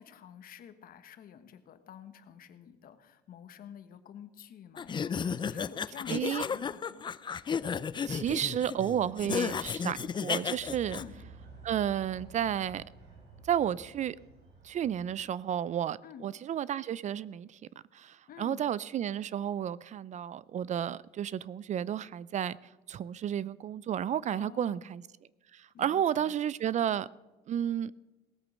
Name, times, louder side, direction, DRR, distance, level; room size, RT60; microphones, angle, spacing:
voice 1, 0.0-7.1 10.9-11.2 16.0-16.3 18.3-18.6 24.3-24.9 25.7-26.3, left 8 dB, 60° left, 1.3 m, -49 dB
sound 1, 4.8-11.0, left 6 dB, 25° left, 0.4 m, -33 dB
voice 2, 6.1-6.4 8.0-11.0 11.6-12.8 13.4-14.2 14.6-17.6 17.9-22.6 22.9-25.0 25.5-27.1 27.5-27.9, right 10 dB, 45° right, 0.4 m, -32 dB
sound 2, 10.5-15.4, right 4 dB, 75° right, 5.7 m, -52 dB
18.0 x 8.4 x 6.4 m
cardioid pair, 110°, 17 cm